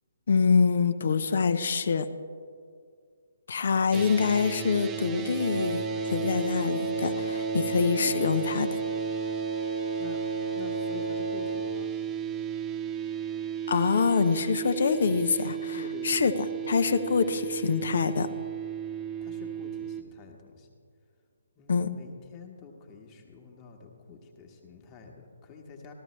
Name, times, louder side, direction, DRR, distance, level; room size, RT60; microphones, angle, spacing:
voice 1, 0.3-2.1 3.5-5.8 6.1-8.7 13.7-16.3 16.6-18.3 21.7-21.9, left 5 dB, 55° left, 11 dB, 0.6 m, -25 dB
sound 1, 3.9-20.0, right 9 dB, 15° right, 0.4 m, -34 dB
Wind instrument woodwind instrument, 5.4-11.8, equal, 80° left, 0.9 m, -35 dB
voice 2, 10.5-11.9 15.7-16.3 19.2-20.7 21.6-25.9, left 5 dB, 20° left, 2 dB, 1.3 m, -46 dB
14.0 x 13.0 x 3.1 m, 2.2 s
figure-of-eight pair, 135°, 0 cm